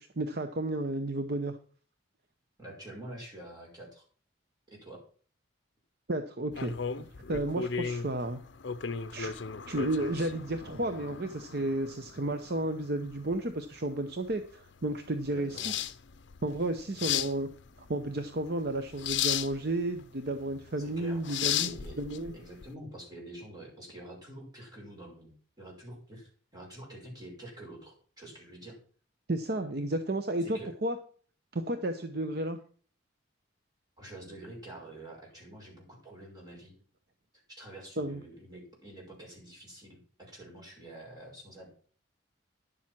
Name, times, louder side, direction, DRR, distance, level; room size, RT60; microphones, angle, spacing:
voice 1, 0.0-1.6 6.1-8.4 9.1-9.4 9.7-15.9 16.4-17.5 17.9-22.3 29.3-31.0 31.5-32.6 38.0-38.2, right 1 dB, 50° right, 8 dB, 0.8 m, -32 dB
voice 2, 2.6-4.0 4.7-5.0 15.3-15.8 20.8-22.0 22.3-28.8 30.4-30.7 34.0-36.7 37.6-41.7, right 1 dB, 20° right, -3 dB, 5.7 m, -47 dB
sound 1, 6.5-22.7, left 9 dB, 65° left, 0.6 m, -36 dB
11.0 x 7.5 x 6.0 m, 0.43 s
head